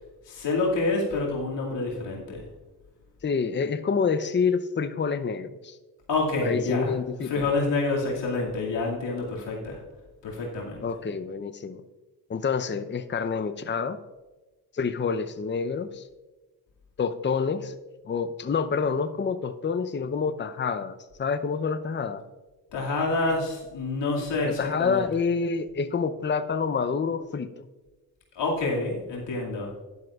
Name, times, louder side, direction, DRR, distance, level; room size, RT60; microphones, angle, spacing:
voice 1, 0.3-2.4 6.1-6.9 7.2-9.8 10.2-10.8 22.7-25.0 28.4-29.7, left 3 dB, 70° left, -3 dB, 2.4 m, -27 dB
voice 2, 3.2-5.8 6.4-7.5 10.8-11.8 12.3-14.0 14.7-16.0 17.0-17.7 18.0-22.2 24.4-27.6, left 5 dB, 25° left, 11 dB, 0.7 m, -28 dB
12.0 x 11.0 x 2.4 m, 1.2 s
hypercardioid pair, 40°, 44 cm